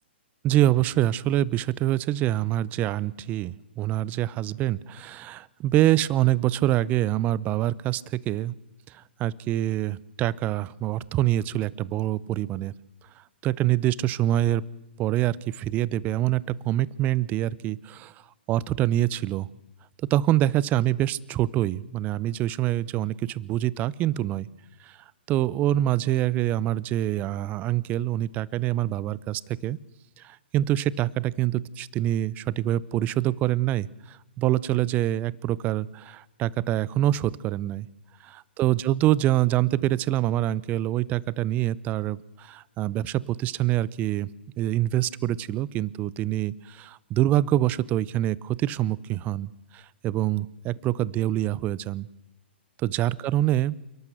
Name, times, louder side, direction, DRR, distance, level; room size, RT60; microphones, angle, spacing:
voice 1, 0.4-8.5 8.9-12.7 13.4-14.6 15.0-18.1 18.5-19.5 20.1-24.5 24.8-25.0 25.3-29.8 30.2-37.9 38.2-44.3 44.6-52.1 52.8-53.7, right 13 dB, 25° right, 22 dB, 0.7 m, -25 dB
28.5 x 12.0 x 8.0 m, 0.91 s
hypercardioid pair, 120°, 6 cm